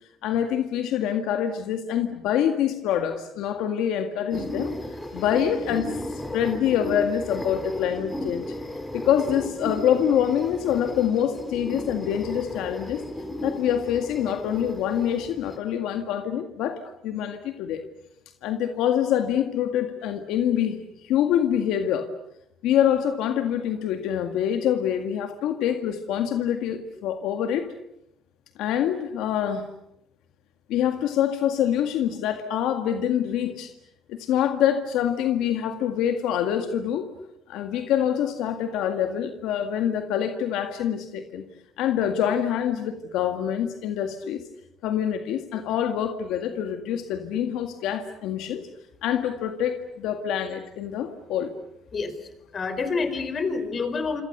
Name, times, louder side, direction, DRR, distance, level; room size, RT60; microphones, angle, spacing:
voice 1, 0.2-4.7 5.1-8.5 8.9-13.0 13.4-17.8 18.4-22.1 22.6-27.7 28.6-29.7 30.7-33.7 34.1-37.1 37.5-41.4 41.8-44.5 44.8-48.6 49.0-51.5, left 9 dB, 85° left, 7 dB, 1.9 m, -25 dB
sound 1, 4.3-15.6, left 1 dB, 10° left, 4.1 m, -35 dB
voice 2, 52.5-54.2, left 4 dB, 40° left, 11 dB, 4.5 m, -27 dB
27.5 x 27.5 x 6.7 m, 0.80 s
cardioid pair, 105°, 0 cm